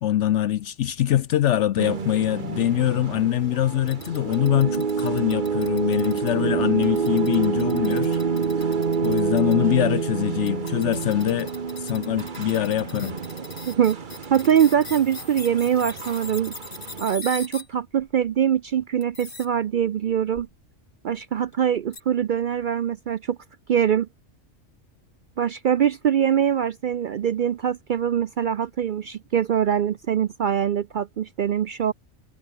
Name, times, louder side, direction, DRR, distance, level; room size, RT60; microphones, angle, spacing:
voice 1, 0.0-8.2 8.6-8.7 9.0-11.5 11.8-13.2, left 12 dB, 70° left, 0.9 m, -23 dB
sound 1, 1.8-17.0, right 5 dB, 40° right, 1.2 m, -28 dB
sound 2, 3.9-6.3 6.8-9.5 10.5-17.7 18.0-18.4 19.0-19.5 20.3-20.5 21.4-21.5 21.9-22.0, left 3 dB, 40° left, 2.4 m, -41 dB
voice 2, 13.6-14.0 14.3-16.5 17.0-20.5 21.0-23.4 23.7-24.1 25.4-31.9, right 9 dB, 65° right, 0.5 m, -23 dB
omnidirectional pair, 1.3 m